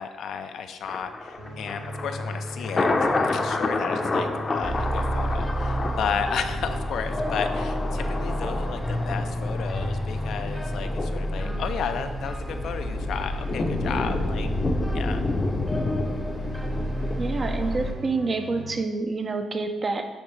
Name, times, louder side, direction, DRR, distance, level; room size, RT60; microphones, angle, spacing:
voice 1, 0.0-14.5 14.9-15.2, left 7 dB, 70° left, 8 dB, 0.4 m, -33 dB
Thunder, 0.8-18.0 18.3-18.4, left 3 dB, 30° left, 0.6 m, -30 dB
sound 1, 1.4-18.8, right 1 dB, 85° right, 1.4 m, -41 dB
sound 2, 4.6-17.9, equal, ahead, 0.8 m, -29 dB
voice 2, 17.2-20.1, right 3 dB, 35° right, 6 dB, 0.6 m, -27 dB
10.5 x 3.5 x 3.2 m, 1.3 s
cardioid pair, 90°, 0 cm